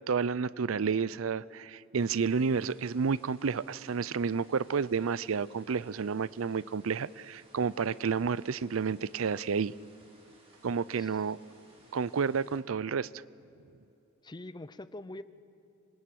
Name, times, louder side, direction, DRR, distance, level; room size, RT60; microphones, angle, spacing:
voice 1, 0.1-9.7 10.6-11.4 11.9-13.1, right 5 dB, 85° right, 20 dB, 0.5 m, -30 dB
sound 1, 1.9-12.6, right 2 dB, 30° right, 4.7 m, -61 dB
voice 2, 14.2-15.2, left 1 dB, 20° left, 15 dB, 0.6 m, -44 dB
26.5 x 23.0 x 8.6 m, 2.8 s
head